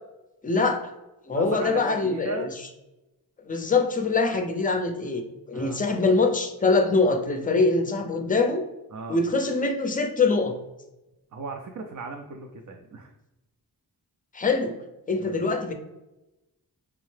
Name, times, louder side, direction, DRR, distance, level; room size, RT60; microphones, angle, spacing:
voice 1, 0.4-0.9 1.3-2.5 3.5-5.2 5.5-8.6 9.1-10.6 14.3-14.7 15.1-15.7, left 3 dB, 20° left, 5 dB, 0.4 m, -23 dB
voice 2, 1.3-2.5 5.5-5.8 8.9-9.2 11.3-13.1 15.1-15.4, right 4 dB, 50° right, 3 dB, 0.5 m, -36 dB
4.6 x 2.1 x 3.2 m, 0.98 s
wide cardioid pair, 120°, 38 cm